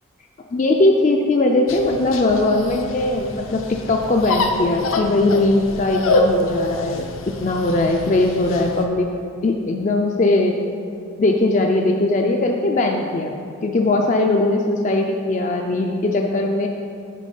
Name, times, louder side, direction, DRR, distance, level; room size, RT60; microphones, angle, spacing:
voice 1, 0.5-3.6 3.9-7.1 7.4-9.1 9.4-10.6 11.2-13.4 13.6-16.7, left 2 dB, 35° left, 1 dB, 0.4 m, -19 dB
sound 1, 1.7-8.8, left 2 dB, 75° left, 0.6 m, -26 dB
8.3 x 4.7 x 5.4 m, 2.5 s
head